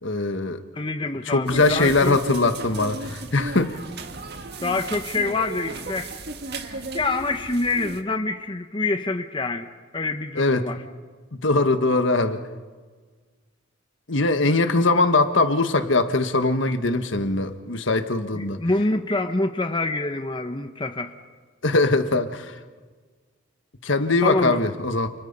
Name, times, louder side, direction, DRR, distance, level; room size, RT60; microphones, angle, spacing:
voice 1, 0.0-0.6 1.2-3.8 10.3-10.7 11.3-12.4 14.1-18.6 21.6-22.6 23.8-25.1, left 3 dB, 65° left, 8 dB, 1.5 m, -21 dB
voice 2, 0.7-2.2 4.6-6.1 6.5-10.8 18.3-21.1 24.2-24.6, left 2 dB, 25° left, 6 dB, 1.0 m, -26 dB
sound 1, 1.5-8.0, right 2 dB, 55° right, 1.6 m, -35 dB
29.5 x 29.5 x 5.5 m, 1.5 s
head